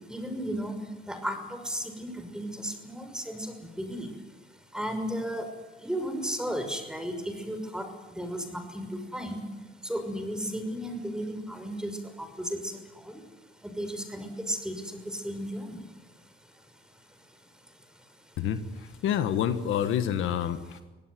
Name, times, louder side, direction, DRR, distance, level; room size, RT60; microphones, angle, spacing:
voice 1, 0.1-0.8 1.1-4.1 4.7-5.5 5.8-9.4 9.8-13.2 13.6-15.8, equal, 5° right, 7 dB, 6.0 m, -34 dB
voice 2, 19.0-20.8, left 9 dB, 85° left, 10 dB, 1.6 m, -27 dB
24.5 x 17.5 x 9.5 m, 1.2 s
cardioid pair, 90°, 20 cm